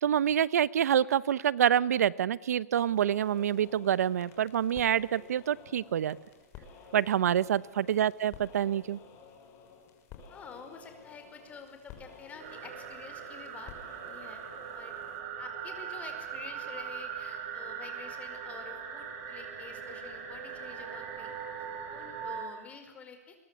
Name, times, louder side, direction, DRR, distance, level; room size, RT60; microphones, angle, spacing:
voice 1, 0.0-6.2 6.9-9.0, right 10 dB, 80° right, 19 dB, 1.0 m, -27 dB
sound 1, 2.8-15.2, left 6 dB, 30° left, 6.1 m, -52 dB
voice 2, 10.3-13.7 14.1-14.4 14.7-14.9 15.4-23.4, left 5 dB, 15° left, 6 dB, 5.1 m, -48 dB
sound 2, 12.4-22.4, right 7 dB, 45° right, 6.1 m, -40 dB
28.0 x 23.0 x 8.3 m, 1.0 s
hypercardioid pair, 145°, 8 cm